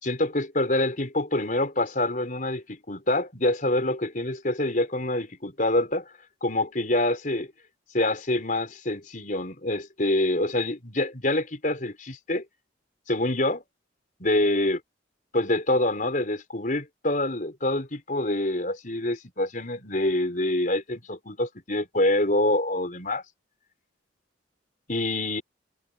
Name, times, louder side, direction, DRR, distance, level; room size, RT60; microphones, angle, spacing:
voice 1, 0.0-6.1 6.4-7.5 7.9-12.4 13.1-13.6 14.2-14.8 15.3-23.2 24.9-25.4, left 1 dB, 45° left, 4.8 m, -26 dB
head